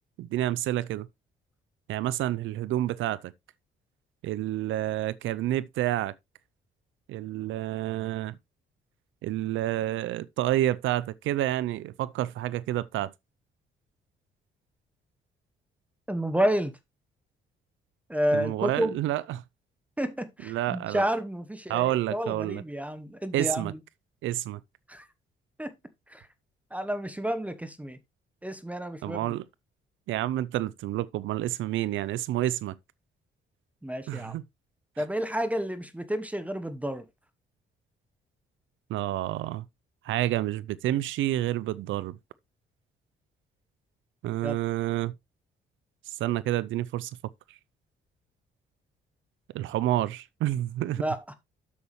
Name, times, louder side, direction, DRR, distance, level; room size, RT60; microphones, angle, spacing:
voice 1, 0.2-1.1 1.9-3.3 4.2-6.1 7.1-8.4 9.2-13.1 18.3-19.4 20.4-21.0 21.7-22.6 23.3-23.7 24.2-24.6 29.0-29.4 30.1-32.7 34.1-34.4 38.9-39.6 40.0-42.2 44.2-45.1 46.1-47.1 49.5-51.0, right 14 dB, 80° right, 0.5 m, -29 dB
voice 2, 16.1-16.7 18.1-19.0 20.0-23.8 24.9-25.1 25.6-25.7 26.1-26.3 26.7-28.0 28.4-29.3 33.8-34.3 35.0-37.0 44.4-44.6 51.0-51.3, equal, 5° right, 1.0 m, -30 dB
8.3 x 7.0 x 3.1 m
cardioid pair, 90°, 20 cm